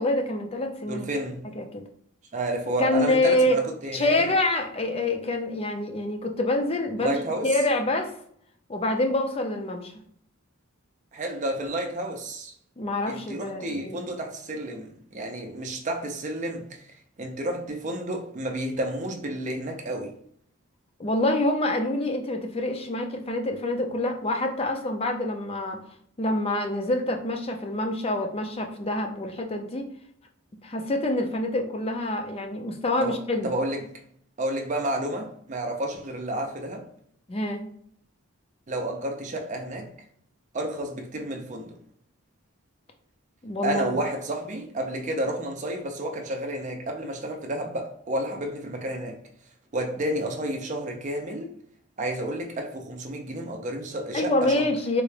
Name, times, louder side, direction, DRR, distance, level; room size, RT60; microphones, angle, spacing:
voice 1, 0.0-1.1 1.6-1.8 2.8-3.6 3.9-7.2 7.4-8.1 8.7-9.9 12.8-14.1 21.0-25.8 26.2-29.9 30.6-33.5 37.3-37.7 43.4-43.9 54.1-55.0, left 1 dB, 30° left, 0.4 m, -26 dB
voice 2, 0.9-1.5 2.3-4.3 7.0-7.5 11.1-12.5 13.1-16.9 17.2-20.1 33.0-33.9 34.4-36.9 38.7-39.9 40.5-41.7 43.6-49.2 49.7-51.5 52.0-54.5, right 1 dB, 35° right, 0.5 m, -31 dB
3.8 x 2.1 x 3.2 m
head